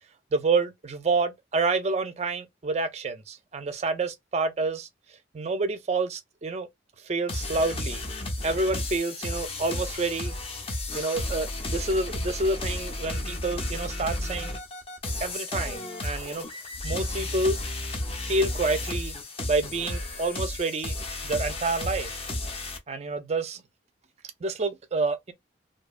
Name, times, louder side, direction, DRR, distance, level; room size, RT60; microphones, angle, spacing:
voice 1, 0.3-4.9 5.3-6.7 7.0-8.1 8.4-10.4 10.9-14.6 15.2-16.5 16.8-17.6 18.2-19.2 19.5-21.0 21.2-22.1 22.9-23.6 24.4-25.3, right 3 dB, 35° right, 0.4 m, -28 dB
sound 1, 7.3-22.8, left 2 dB, 30° left, 0.5 m, -33 dB
2.7 x 2.2 x 2.3 m
head